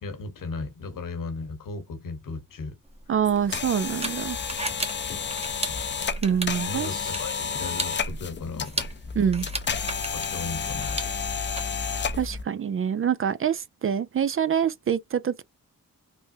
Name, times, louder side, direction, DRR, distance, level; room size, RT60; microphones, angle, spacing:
voice 1, 0.0-2.8 6.7-8.7 10.1-11.0 11.3-11.4, left 4 dB, 75° left, 1.1 m, -36 dB
sound 1, 2.9-11.6, right 2 dB, 20° right, 1.0 m, -36 dB
voice 2, 3.1-4.4 6.2-6.9 9.2-9.5 12.2-15.4, right 8 dB, 40° right, 0.4 m, -25 dB
sound 2, 3.3-12.4, left 6 dB, 35° left, 0.5 m, -31 dB
3.4 x 2.1 x 2.6 m
cardioid pair, 50°, 33 cm